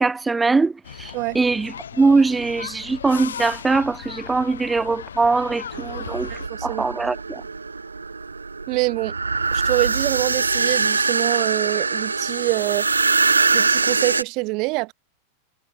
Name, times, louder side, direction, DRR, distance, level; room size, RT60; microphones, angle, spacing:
voice 1, 0.0-6.3 6.6-7.4, right 3 dB, 10° right, 0.4 m, -21 dB
sound 1, 0.8-6.5, left 8 dB, 70° left, 3.0 m, -36 dB
sound 2, 5.7-14.2, right 4 dB, 80° right, 1.3 m, -23 dB
voice 2, 6.5-6.9 8.7-9.1 9.5-12.9 13.5-14.9, right 26 dB, 40° right, 2.1 m, -25 dB
figure-of-eight pair, 90°, 0 cm